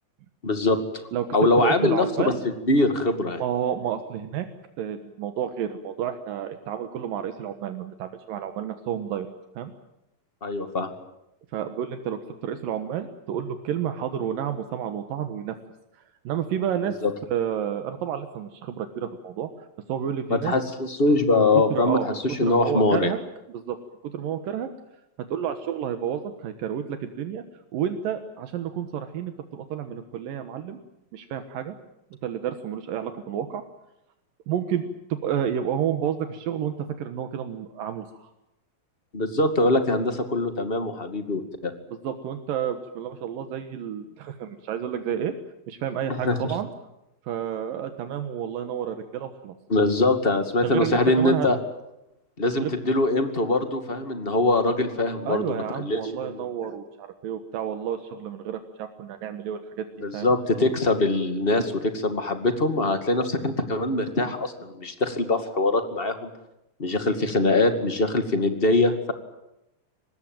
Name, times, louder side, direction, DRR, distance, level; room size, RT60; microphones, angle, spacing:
voice 1, 0.4-0.8 1.3-2.3 2.7-3.4 10.4-10.9 17.0-17.1 20.3-23.1 39.1-41.7 46.2-46.4 49.7-51.6 52.4-56.5 60.0-66.3 66.8-69.1, left 2 dB, 20° left, 8 dB, 1.8 m, -23 dB
voice 2, 1.6-2.4 3.4-4.5 4.8-9.3 9.6-9.7 11.5-15.6 16.2-17.0 17.3-19.5 19.9-20.5 21.3-21.4 21.7-23.2 23.5-23.8 24.0-24.7 25.3-27.4 27.7-30.8 31.1-31.7 32.2-33.6 34.5-34.9 35.2-38.3 42.0-45.3 45.7-46.7 47.2-49.5 50.6-51.5 52.6-52.7 55.2-59.9 60.1-60.3, right 9 dB, 80° right, 8 dB, 3.0 m, -30 dB
25.0 x 20.0 x 9.1 m, 0.87 s
omnidirectional pair, 4.0 m